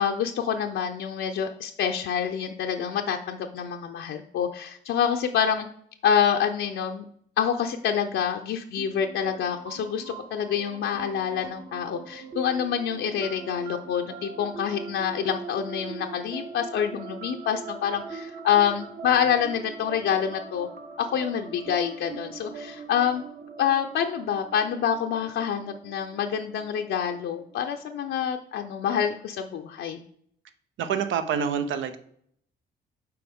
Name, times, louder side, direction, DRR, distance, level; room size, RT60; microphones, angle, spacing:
voice 1, 0.0-5.7 6.0-7.0 7.4-20.7 21.0-23.2 23.6-30.0, left 8 dB, 75° left, 3 dB, 0.6 m, -27 dB
sound 1, 8.8-28.3, right 5 dB, 50° right, 1.2 m, -42 dB
voice 2, 30.8-32.0, right 7 dB, 75° right, 10 dB, 0.8 m, -27 dB
7.6 x 4.6 x 3.5 m, 0.65 s
cardioid pair, 90°, 20 cm